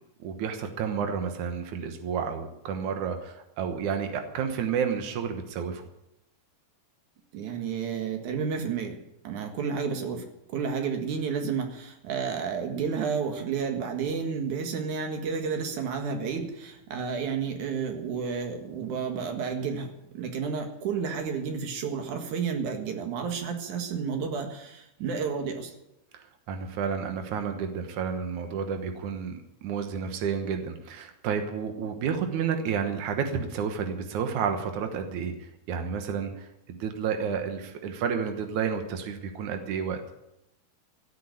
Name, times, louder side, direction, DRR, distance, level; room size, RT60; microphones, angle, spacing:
voice 1, 0.2-5.8 26.1-40.0, right 6 dB, 85° right, 6 dB, 1.7 m, -31 dB
voice 2, 7.3-9.0 9.2-25.7, right 6 dB, 55° right, 5 dB, 2.4 m, -31 dB
15.0 x 8.5 x 9.9 m, 0.88 s
omnidirectional pair, 5.4 m